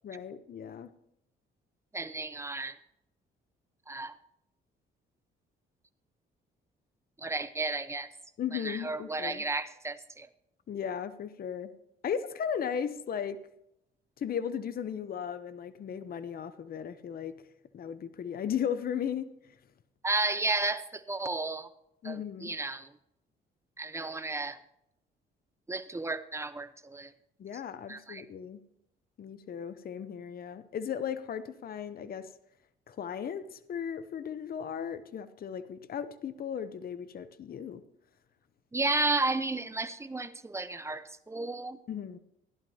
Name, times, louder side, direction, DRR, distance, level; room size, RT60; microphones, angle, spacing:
voice 1, 0.0-0.9 8.4-9.4 10.7-11.7 12.0-13.4 14.2-17.3 17.7-19.3 22.0-22.5 27.4-28.6 29.2-32.3 32.9-37.8 41.9-42.2, left 8 dB, 50° left, 13 dB, 0.7 m, -36 dB
voice 2, 1.9-2.8 3.9-4.1 7.2-8.1 8.5-10.3 20.0-21.7 22.0-22.9 23.8-24.6 25.7-27.1 27.9-28.2 38.7-41.8, right 2 dB, 15° right, 11 dB, 0.8 m, -33 dB
15.5 x 11.0 x 2.8 m, 0.81 s
cardioid pair, 90°, 20 cm